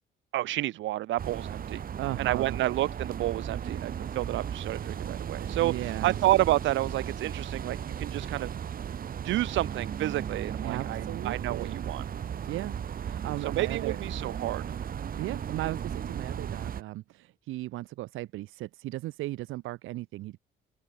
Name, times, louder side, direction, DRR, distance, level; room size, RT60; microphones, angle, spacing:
voice 1, 0.3-1.8 2.2-8.6 9.2-12.1 13.4-14.8, right 15 dB, 75° right, 0.5 m, -30 dB
sound 1, 1.2-16.8, right 8 dB, 45° right, 0.9 m, -36 dB
voice 2, 2.0-2.6 5.6-6.2 10.6-11.8 12.5-12.8 13.0-14.0 15.2-20.4, right 17 dB, 90° right, 0.9 m, -36 dB
open air
cardioid pair, 90°, 20 cm